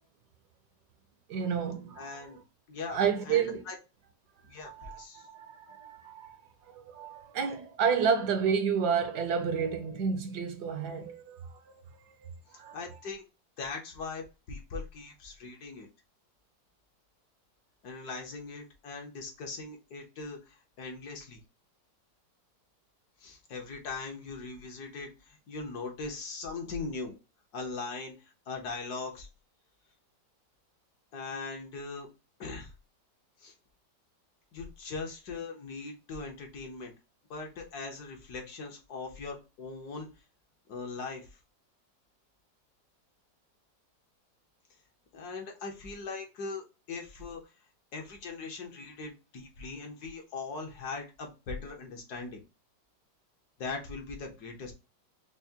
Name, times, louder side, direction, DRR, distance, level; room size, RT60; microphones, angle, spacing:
voice 1, 1.3-2.3 2.9-3.6 4.6-6.4 6.7-11.6 12.5-12.8, right 6 dB, 70° right, 1.2 m, -30 dB
voice 2, 2.0-2.4 2.7-3.7 4.4-5.3 12.7-13.2 13.6-15.9 17.8-21.4 23.2-27.2 27.5-29.3 31.1-32.1 32.4-32.7 33.4-33.5 34.5-36.9 37.3-40.1 40.7-41.4 45.1-47.4 47.9-52.4 53.6-54.7, left 4 dB, 65° left, 1.4 m, -40 dB
5.6 x 2.1 x 2.7 m
omnidirectional pair, 2.0 m